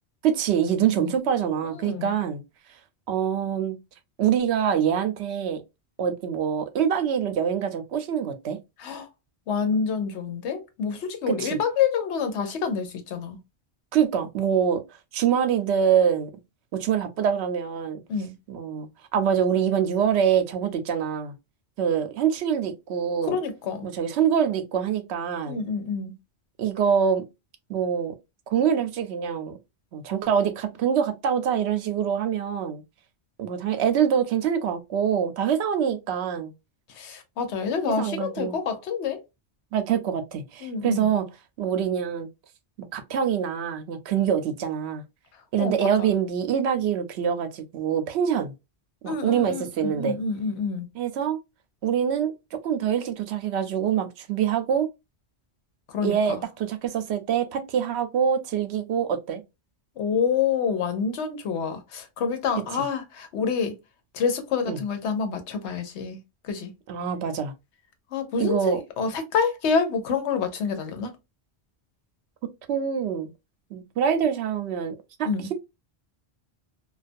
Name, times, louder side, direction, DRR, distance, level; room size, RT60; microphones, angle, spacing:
voice 1, 0.2-2.4 3.1-3.8 4.2-5.6 6.0-8.6 11.3-11.6 13.9-14.8 15.1-16.3 16.7-18.0 18.5-21.3 21.8-23.4 23.8-25.6 26.6-27.2 27.7-28.1 28.5-29.6 29.9-32.8 33.4-36.5 38.0-38.6 39.7-41.3 41.6-42.3 42.9-45.0 45.5-48.5 49.0-50.2 50.9-51.4 51.8-54.9 56.0-59.4 64.7-64.8 66.9-67.5 68.4-68.8 72.7-73.3 73.7-74.9 75.2-75.5, right 8 dB, 80° right, 0.8 m, -25 dB
voice 2, 1.7-2.1 8.8-9.1 9.5-13.4 18.1-18.3 23.2-23.9 25.5-26.1 36.9-39.2 40.6-41.1 45.6-46.1 49.1-50.9 55.9-56.4 60.0-63.7 64.1-66.2 66.4-66.7 68.1-71.1 75.3-75.5, left 6 dB, 90° left, 1.0 m, -27 dB
2.3 x 2.3 x 2.5 m
omnidirectional pair, 1.1 m